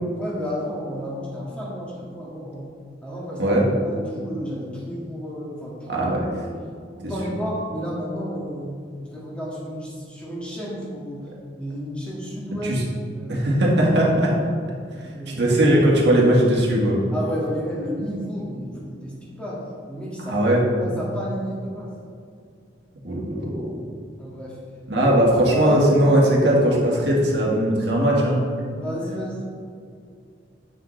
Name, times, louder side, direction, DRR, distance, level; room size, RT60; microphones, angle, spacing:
voice 1, 0.2-2.7 3.0-6.1 6.4-6.6 7.0-11.3 11.6-12.7 13.1-13.3 14.9-15.5 17.1-20.4 20.8-21.9 24.2-24.6 24.9-25.1 25.5-25.8 28.8-29.4, equal, 5° left, -6 dB, 1.8 m, -32 dB
voice 2, 5.9-6.3 12.6-12.8 13.3-14.3 15.3-17.0 20.3-20.6 23.0-23.7 24.9-28.4, right 1 dB, 70° right, -3 dB, 1.7 m, -19 dB
9.2 x 6.3 x 3.2 m, 2.2 s
head